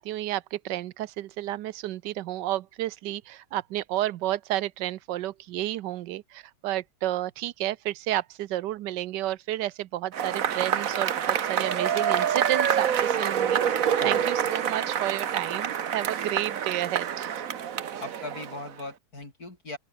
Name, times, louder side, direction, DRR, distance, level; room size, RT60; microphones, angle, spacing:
voice 1, 0.0-17.4, right 14 dB, 85° right, 1.3 m, -31 dB
Cheering / Applause / Crowd, 10.1-18.8, right 8 dB, 55° right, 1.4 m, -27 dB
voice 2, 18.0-19.8, left 2 dB, 60° left, 6.5 m, -39 dB
open air
omnidirectional pair, 1.8 m